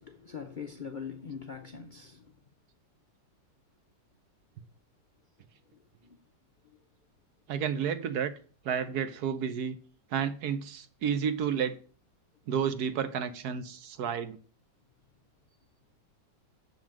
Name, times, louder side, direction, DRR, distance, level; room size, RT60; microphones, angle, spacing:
voice 1, 0.0-2.3 6.0-6.2, left 6 dB, 65° left, 0.4 m, -42 dB
voice 2, 7.5-8.3 8.6-9.8 10.1-11.8 12.5-14.4, right 7 dB, 65° right, 1.2 m, -31 dB
7.3 x 5.5 x 7.4 m
omnidirectional pair, 1.9 m